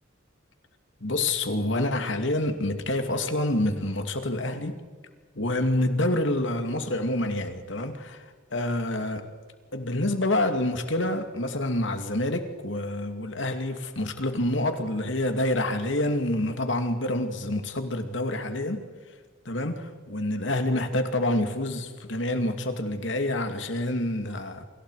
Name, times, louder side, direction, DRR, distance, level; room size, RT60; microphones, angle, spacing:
voice 1, 1.0-4.8 5.3-9.3 9.7-18.9 19.4-24.6, left 1 dB, 75° left, 2.5 m, -27 dB
29.0 x 26.0 x 4.9 m
head